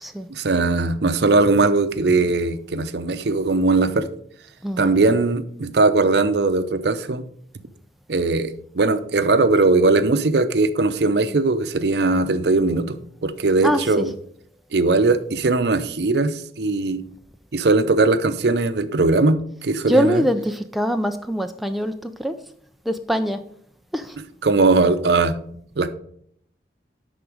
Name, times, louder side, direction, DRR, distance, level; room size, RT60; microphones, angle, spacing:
voice 1, 0.3-4.1 4.8-7.2 8.1-13.0 13.2-14.1 14.7-17.0 17.5-20.2 24.4-25.4 25.8-25.9, right 3 dB, 75° right, 11 dB, 0.6 m, -19 dB
voice 2, 4.6-4.9 13.6-14.0 19.9-22.4 22.9-23.4 23.9-24.2, equal, ahead, 6 dB, 0.3 m, -23 dB
10.5 x 4.0 x 5.0 m, 0.66 s
head